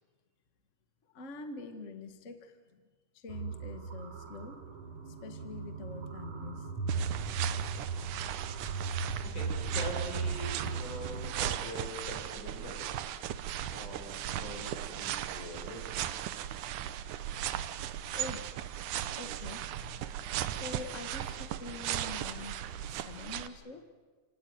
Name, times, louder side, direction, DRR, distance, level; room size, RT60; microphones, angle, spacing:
voice 1, 1.1-2.8 3.1-4.6 5.1-6.7 18.1-18.6 19.0-20.0 20.5-24.1, left 3 dB, 30° left, 7 dB, 1.5 m, -45 dB
sound 1, 3.3-11.3, right 5 dB, 60° right, 4.0 m, -37 dB
sound 2, 6.9-23.5, right 11 dB, 90° right, 2.5 m, -37 dB
voice 2, 9.3-13.0 13.6-16.0, left 2 dB, 90° left, 0 dB, 8.2 m, -43 dB
28.5 x 18.5 x 9.5 m, 1.4 s
omnidirectional pair, 3.5 m